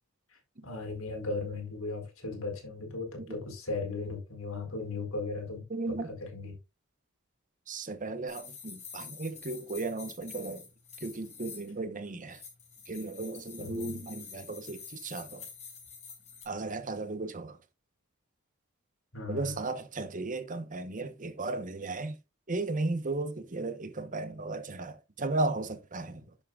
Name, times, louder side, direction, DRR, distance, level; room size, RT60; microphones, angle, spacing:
voice 1, 0.6-5.6 6.1-6.5 13.6-14.0 19.1-19.5 26.1-26.2, left 3 dB, 75° left, 4.2 m, -37 dB
voice 2, 5.7-6.1 7.7-10.7 11.0-12.4 12.9-15.5 16.4-17.6 19.3-22.2 22.5-26.3, right 2 dB, 40° right, 1.1 m, -35 dB
sound 1, 8.3-11.7 12.3-16.4, left 6 dB, 35° left, 4.8 m, -48 dB
11.0 x 7.0 x 2.4 m
head